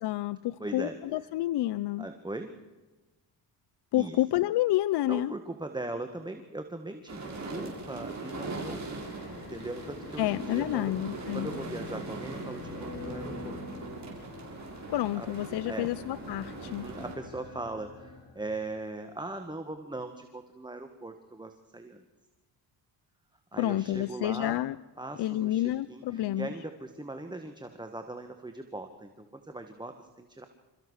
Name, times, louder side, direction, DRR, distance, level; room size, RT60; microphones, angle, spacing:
voice 1, 0.0-2.1 3.9-5.3 10.2-11.5 14.9-16.9 23.6-24.8 25.2-26.5, left 14 dB, 65° left, 16 dB, 0.6 m, -29 dB
voice 2, 0.6-1.0 2.0-2.5 3.9-4.2 5.0-9.1 9.5-13.6 15.1-15.3 15.6-15.9 16.6-22.0 23.5-24.6 25.0-30.5, right 2 dB, 10° right, 7 dB, 1.7 m, -40 dB
sound 1, 7.1-17.1, right 3 dB, 40° right, 6.4 m, -41 dB
sound 2, 8.2-18.8, left 4 dB, 50° left, 5.0 m, -45 dB
28.0 x 14.5 x 6.5 m, 1.2 s
cardioid pair, 95°, 44 cm